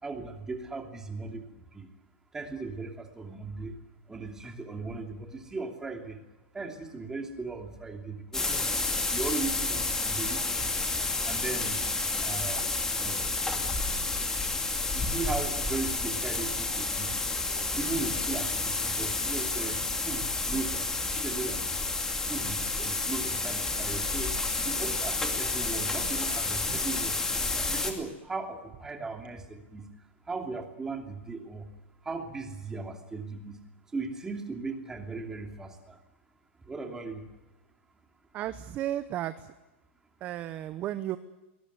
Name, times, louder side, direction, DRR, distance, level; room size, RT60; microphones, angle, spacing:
voice 1, 0.0-1.5 1.7-1.9 2.3-3.8 4.1-6.2 6.5-8.7 9.1-10.7 11.2-11.8 12.2-12.6 13.0-13.3 14.9-17.1 17.8-21.6 22.3-24.3 24.6-27.2 27.5-29.9 30.3-31.7 32.0-33.6 33.9-36.0 36.6-37.2, right 4 dB, 10° right, 4 dB, 2.9 m, -37 dB
sound 1, 8.3-27.9, left 3 dB, 10° left, 2.5 m, -30 dB
voice 2, 38.3-39.5 40.2-41.2, right 13 dB, 25° right, 12 dB, 0.9 m, -34 dB
23.0 x 21.0 x 9.5 m, 1.0 s
supercardioid pair, 165°, 7 cm